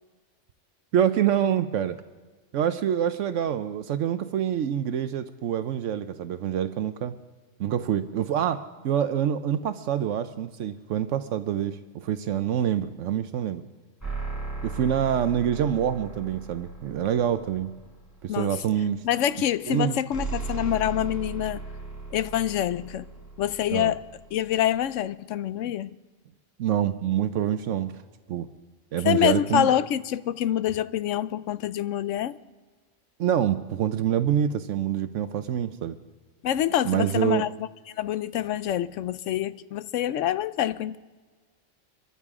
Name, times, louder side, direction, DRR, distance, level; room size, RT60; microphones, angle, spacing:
voice 1, 0.9-2.0 2.5-7.1 7.6-13.6 14.6-17.7 18.2-19.0 19.7-20.0 23.7-23.9 26.6-27.9 28.3-28.5 28.9-29.7 33.2-36.0 36.8-37.5, right 9 dB, 80° right, 1.0 m, -26 dB
sound 1, 14.0-18.5 20.1-24.9, right 3 dB, 15° left, 5.6 m, -37 dB
voice 2, 18.3-18.6 19.0-21.6 22.1-23.1 23.4-24.1 24.3-26.0 29.0-32.3 36.4-37.7 38.0-41.0, left 11 dB, 85° left, 1.0 m, -26 dB
25.5 x 13.5 x 3.7 m
omnidirectional pair, 1.3 m